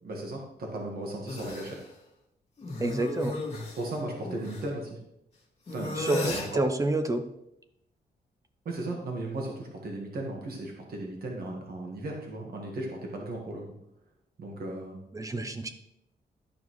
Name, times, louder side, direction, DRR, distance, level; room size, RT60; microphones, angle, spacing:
voice 1, 0.0-1.8 3.8-5.0 5.7-6.0 6.3-6.6 8.6-13.6 14.4-15.0, right 2 dB, 60° right, 0 dB, 1.5 m, -36 dB
sound 1, 1.3-1.8 2.6-4.7 5.7-6.6, left 2 dB, 35° left, 2.0 m, -35 dB
voice 2, 2.8-3.4 6.0-7.2 15.1-15.7, right 2 dB, 20° right, 8 dB, 0.6 m, -28 dB
12.0 x 5.3 x 3.1 m, 0.80 s
wide cardioid pair, 180°, 17 cm